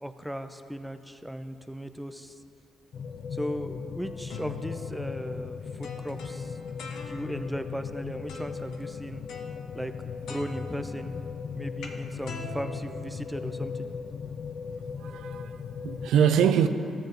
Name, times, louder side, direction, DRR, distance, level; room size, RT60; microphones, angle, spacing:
voice 1, 0.0-2.4 3.3-6.6 7.0-9.2 9.7-9.9 10.2-11.1 11.5-13.9, equal, 5° right, 0.5 m, -37 dB
sound 1, 2.9-16.1, left 5 dB, 60° left, 0.3 m, -37 dB
sound 2, 4.0-7.6 8.3-8.8 9.3-10.0 10.3-13.8, left 4 dB, 75° left, 0.7 m, -43 dB
voice 2, 15.0-16.7, right 8 dB, 80° right, 0.4 m, -24 dB
13.5 x 7.2 x 2.6 m
supercardioid pair, 55°, 0 cm